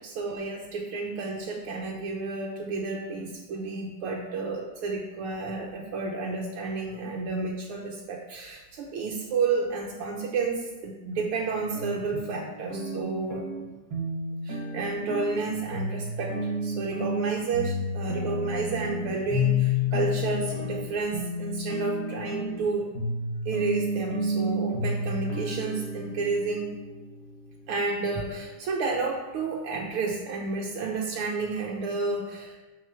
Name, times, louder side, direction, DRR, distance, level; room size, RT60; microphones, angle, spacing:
voice 1, 0.0-13.4 14.4-16.4 16.6-22.9 23.5-26.7 27.7-32.6, right 4 dB, 80° right, -1 dB, 1.8 m, -31 dB
sound 1, 11.7-28.0, left 2 dB, 45° right, 2.1 m, -31 dB
6.5 x 5.2 x 6.7 m, 1.1 s
omnidirectional pair, 2.4 m